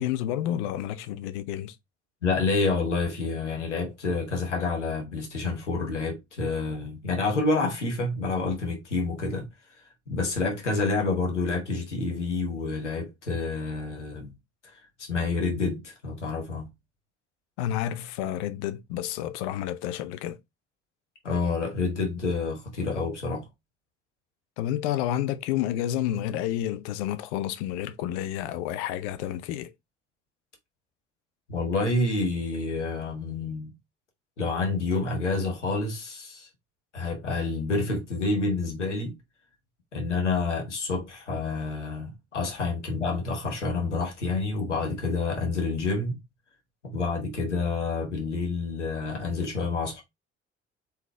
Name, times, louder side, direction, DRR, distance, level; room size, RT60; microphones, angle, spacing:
voice 1, 0.0-1.8 17.6-20.4 24.6-29.7, left 12 dB, 70° left, 0.6 m, -30 dB
voice 2, 2.2-9.5 10.1-14.3 14.6-16.7 21.2-23.5 31.5-33.7 34.4-36.5 36.9-39.1 39.9-46.2 46.8-50.0, left 3 dB, 90° left, 1.1 m, -28 dB
4.1 x 3.9 x 3.1 m
figure-of-eight pair, 45°, 34 cm